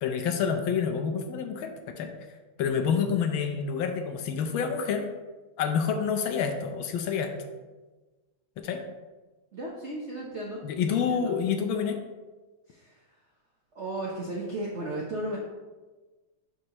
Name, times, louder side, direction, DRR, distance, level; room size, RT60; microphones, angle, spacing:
voice 1, 0.0-2.1 2.6-5.1 5.6-7.3 8.6-8.8 10.6-12.0, left 6 dB, 70° left, 6 dB, 1.3 m, -28 dB
voice 2, 9.5-11.3 12.7-13.0 13.7-15.4, right 1 dB, 70° right, -2 dB, 0.6 m, -35 dB
11.0 x 4.3 x 2.9 m, 1.3 s
omnidirectional pair, 2.4 m